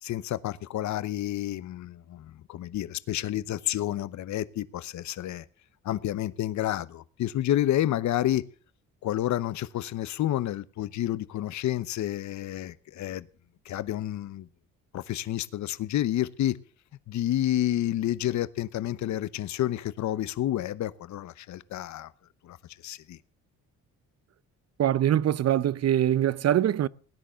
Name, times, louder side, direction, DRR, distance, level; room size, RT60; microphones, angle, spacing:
voice 1, 0.0-5.5 5.8-8.4 9.0-13.3 13.6-14.5 14.9-16.6 17.1-22.1 22.4-22.6 22.8-23.2, left 13 dB, 70° left, 0.9 m, -29 dB
voice 2, 24.8-26.9, right 11 dB, 55° right, 0.8 m, -23 dB
18.0 x 10.5 x 6.9 m
cardioid pair, 90°, 30 cm